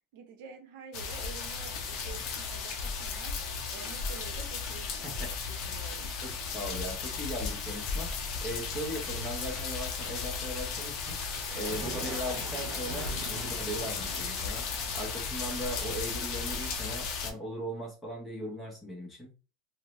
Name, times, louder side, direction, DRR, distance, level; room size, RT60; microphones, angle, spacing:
voice 1, 0.1-3.3 3.7-6.1, right 6 dB, 60° right, 0.7 m, -48 dB
sound 1, 0.9-17.3, left 5 dB, 40° left, 0.5 m, -35 dB
voice 2, 6.2-11.2 11.5-19.3, equal, 10° left, 0.8 m, -39 dB
sound 2, 11.4-17.0, right 8 dB, 40° right, 0.4 m, -45 dB
2.7 x 2.0 x 3.0 m
supercardioid pair, 165°, 0 cm